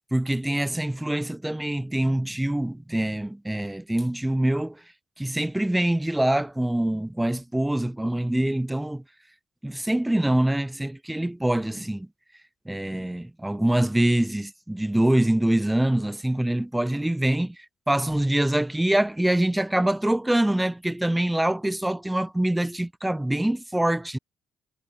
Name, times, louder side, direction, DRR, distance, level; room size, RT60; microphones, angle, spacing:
voice 1, 0.1-4.8 5.2-9.0 9.6-12.1 12.7-24.2, right 1 dB, 10° right, 0.8 m, -24 dB
cardioid pair, 90°, 0 cm